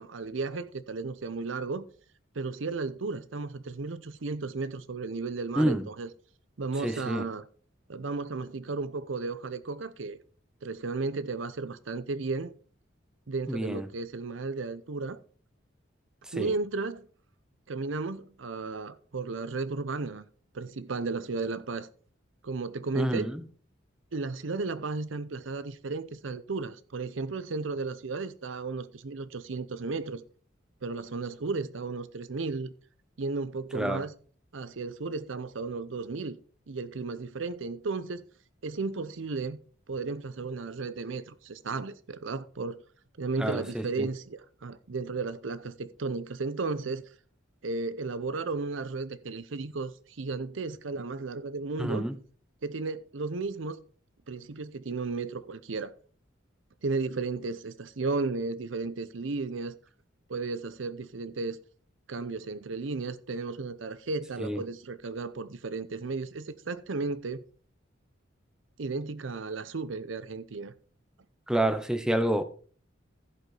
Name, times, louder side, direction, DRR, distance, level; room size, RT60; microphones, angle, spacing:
voice 1, 0.0-1.8 2.3-6.1 6.6-7.5 7.9-10.2 10.6-12.5 13.3-15.2 16.3-17.0 17.7-20.2 20.5-21.9 22.4-23.3 24.1-30.2 30.8-32.7 33.2-34.1 34.5-36.4 36.7-38.2 38.6-39.6 39.9-42.8 43.2-47.0 47.6-52.1 52.6-53.8 54.3-55.9 56.8-59.8 60.3-61.6 62.1-67.4 68.8-70.7, right 3 dB, 80° right, 0.7 m, -34 dB
voice 2, 5.6-5.9 6.8-7.3 13.5-13.9 16.3-16.5 22.9-23.4 33.7-34.0 43.4-44.1 51.8-52.2 64.4-64.6 71.5-72.4, right 1 dB, 5° right, 0.7 m, -28 dB
15.5 x 5.3 x 4.8 m
head